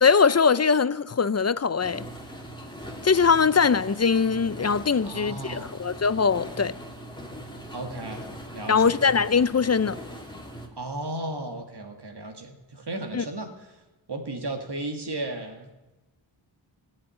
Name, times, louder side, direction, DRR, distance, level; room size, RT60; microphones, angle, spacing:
voice 1, 0.0-2.0 3.0-6.8 8.7-10.0 13.1-13.2, left 5 dB, 35° left, 0.5 m, -21 dB
sound 1, 1.8-10.7, equal, 10° left, 2.3 m, -40 dB
voice 2, 5.0-5.7 7.7-8.3 8.5-9.0 10.7-13.5 14.1-15.7, right 2 dB, 60° right, 2.2 m, -34 dB
16.0 x 7.4 x 9.7 m
wide cardioid pair, 65°, 47 cm